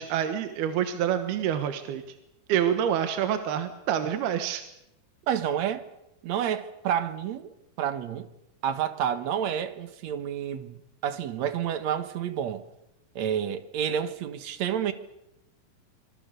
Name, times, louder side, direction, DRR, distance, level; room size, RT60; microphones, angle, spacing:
voice 1, 0.0-2.0 2.5-4.6, right 9 dB, 80° right, 3.2 m, -27 dB
voice 2, 5.3-5.8 6.2-7.5 7.8-8.3 8.6-10.8 11.0-12.6 13.2-14.9, right 9 dB, 65° right, 1.9 m, -29 dB
25.5 x 22.5 x 6.8 m
omnidirectional pair, 4.5 m